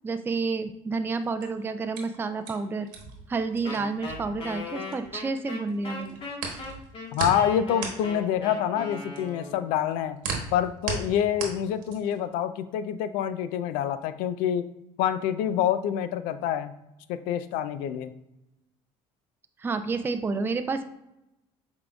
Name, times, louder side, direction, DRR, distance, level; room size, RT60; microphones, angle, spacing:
voice 1, 0.0-2.9 3.3-6.2 19.6-20.8, right 4 dB, 15° right, 8 dB, 0.3 m, -30 dB
sound 1, 1.2-5.4 5.7-12.3, right 5 dB, 80° right, 1.2 m, -36 dB
Wind instrument woodwind instrument, 3.6-9.7, left 3 dB, 40° left, 1.4 m, -38 dB
voice 2, 7.1-10.2 10.5-14.7 15.0-16.7 17.1-18.1, left 9 dB, 80° left, 12 dB, 0.4 m, -27 dB
5.9 x 3.6 x 2.3 m, 0.89 s
supercardioid pair, 95°, 14 cm